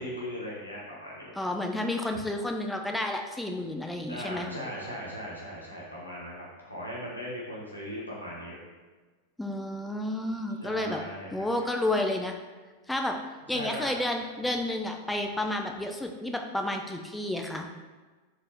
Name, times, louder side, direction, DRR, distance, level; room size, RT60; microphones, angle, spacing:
voice 1, 0.0-1.3 4.1-8.6 10.6-11.5 13.5-14.0, equal, 85° left, -6 dB, 0.9 m, -38 dB
voice 2, 1.4-4.5 9.4-11.0 11.3-12.4 12.9-13.2 13.5-17.7, left 1 dB, 5° left, 3 dB, 0.4 m, -31 dB
4.1 x 2.6 x 3.4 m, 1.3 s
figure-of-eight pair, 90°, 0 cm